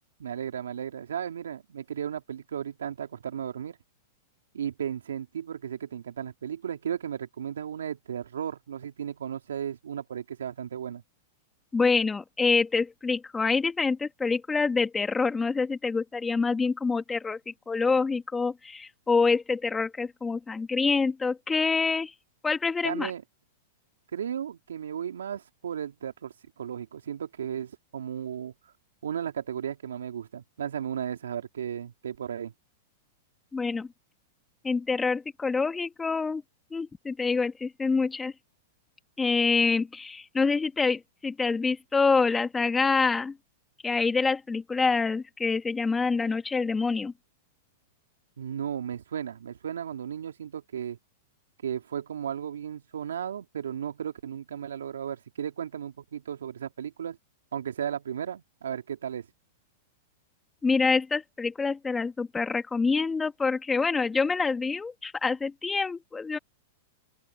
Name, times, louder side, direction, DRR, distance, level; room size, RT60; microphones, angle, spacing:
voice 1, 0.2-3.8 4.5-11.0 22.8-23.2 24.1-28.5 29.0-32.5 48.4-51.0 51.6-57.2 57.5-59.3, right 9 dB, 80° right, 3.2 m, -35 dB
voice 2, 11.7-22.1 22.4-23.1 33.5-33.9 34.6-36.4 36.7-38.3 39.2-43.4 43.8-47.1 60.6-66.4, left 4 dB, 15° left, 2.3 m, -26 dB
open air
hypercardioid pair, 110°, 0 cm